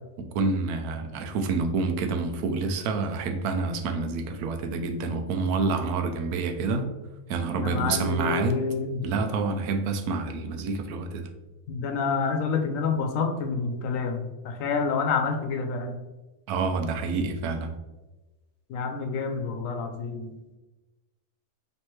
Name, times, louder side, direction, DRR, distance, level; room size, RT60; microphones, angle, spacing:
voice 1, 0.2-6.9 7.3-8.6 9.0-11.3 16.5-17.7, right 4 dB, 90° right, 6 dB, 1.1 m, -28 dB
voice 2, 7.5-9.2 11.7-16.0 18.7-20.3, left 5 dB, 70° left, 4 dB, 0.9 m, -28 dB
4.5 x 3.2 x 3.1 m, 1.1 s
omnidirectional pair, 1.5 m